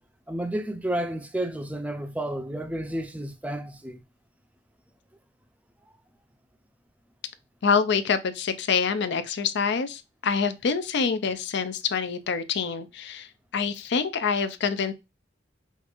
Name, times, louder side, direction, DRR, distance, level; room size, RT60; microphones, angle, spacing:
voice 1, 0.3-4.0, right 1 dB, 10° right, 0.5 m, -31 dB
voice 2, 7.6-13.3 13.5-14.9, left 5 dB, 65° left, 0.5 m, -26 dB
5.0 x 2.6 x 2.4 m
head